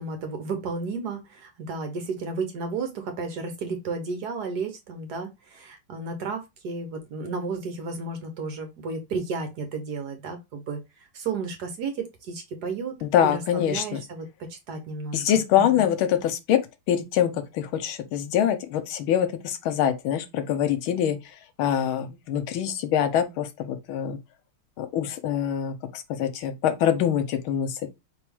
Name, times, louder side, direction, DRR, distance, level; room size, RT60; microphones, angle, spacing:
voice 1, 0.0-12.9 13.2-15.2 15.5-15.9, right 4 dB, 60° right, 1.3 m, -33 dB
voice 2, 13.0-14.0 15.1-16.6 16.9-24.2 24.8-27.9, left 9 dB, 80° left, 1.5 m, -25 dB
4.2 x 3.2 x 3.4 m
omnidirectional pair, 2.2 m